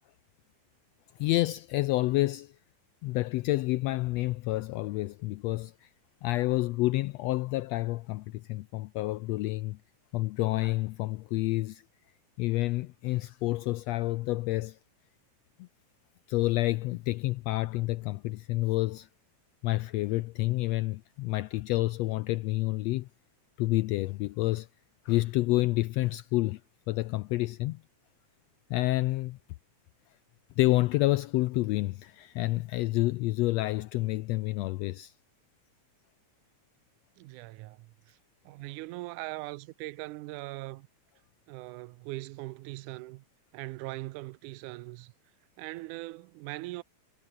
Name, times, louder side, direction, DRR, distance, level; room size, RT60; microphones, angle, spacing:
voice 1, 1.2-2.5 3.0-5.9 6.2-9.8 10.1-11.8 12.4-14.8 15.6-15.7 16.3-19.1 19.6-23.1 23.6-24.7 25.0-26.6 26.9-27.8 28.7-29.4 30.6-35.1, left 18 dB, 85° left, 1.5 m, -29 dB
voice 2, 37.2-38.2 38.4-40.9 41.5-43.2 43.5-45.1 45.6-46.8, right 20 dB, 85° right, 2.1 m, -40 dB
omnidirectional pair, 3.5 m